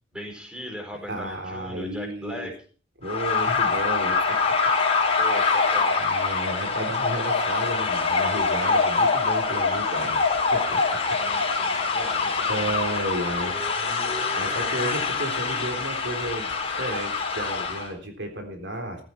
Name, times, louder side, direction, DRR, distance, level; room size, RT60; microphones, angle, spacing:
voice 1, 0.1-2.5 5.2-6.2 11.1-13.0, equal, 5° right, 2 dB, 4.4 m, -39 dB
voice 2, 1.1-2.5 3.0-4.6 5.0-5.2 6.0-10.2 10.5-11.2 11.6-12.0 12.5-13.6 14.3-19.0, right 1 dB, 70° right, 4 dB, 3.7 m, -33 dB
sound 1, 3.0-17.9, left 4 dB, 30° left, 4.5 m, -24 dB
15.0 x 15.0 x 4.5 m, 0.41 s
head